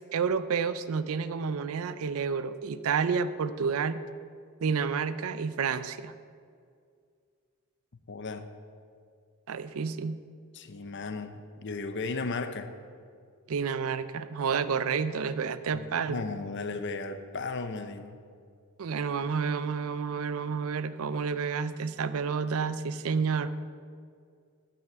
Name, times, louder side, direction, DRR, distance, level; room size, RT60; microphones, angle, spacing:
voice 1, 0.0-4.0 4.6-6.1 9.5-10.2 13.5-16.2 18.8-23.5, right 5 dB, 70° right, 14 dB, 0.4 m, -30 dB
voice 2, 8.1-8.5 10.5-12.7 15.7-18.2, left 3 dB, 55° left, 9 dB, 0.6 m, -35 dB
9.2 x 5.8 x 8.0 m, 2.2 s
head